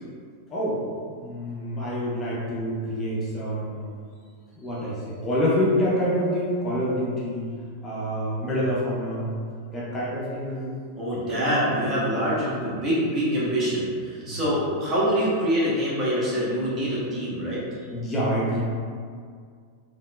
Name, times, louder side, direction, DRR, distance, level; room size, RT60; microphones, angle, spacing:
voice 1, 0.5-3.8 4.6-7.5 7.8-9.4 9.7-10.7 11.3-11.7 14.2-14.5 17.8-18.6, equal, 20° left, -7 dB, 0.5 m, -27 dB
voice 2, 10.9-17.6, equal, 30° right, -8 dB, 1.0 m, -25 dB
3.4 x 2.2 x 2.3 m, 2.1 s
figure-of-eight pair, 90°, 0 cm